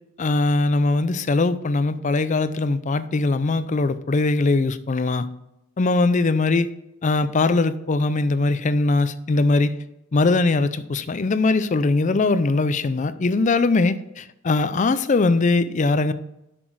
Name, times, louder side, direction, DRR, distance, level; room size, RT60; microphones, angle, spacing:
voice 1, 0.2-5.3 5.8-6.7 7.0-9.7 10.1-16.1, left 3 dB, 35° left, 14 dB, 0.4 m, -21 dB
7.9 x 6.1 x 4.7 m, 0.89 s
head